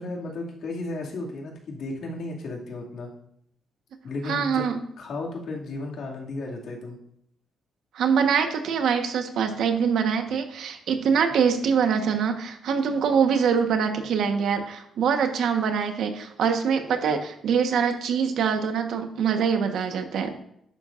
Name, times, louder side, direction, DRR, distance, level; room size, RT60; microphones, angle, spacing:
voice 1, 0.0-3.1 4.0-4.6 5.0-7.0, left 2 dB, 65° left, -2 dB, 2.4 m, -34 dB
voice 2, 4.3-4.8 7.9-20.3, right 6 dB, 75° right, 6 dB, 1.3 m, -24 dB
11.5 x 9.4 x 2.6 m, 0.74 s
cardioid pair, 125°, 0 cm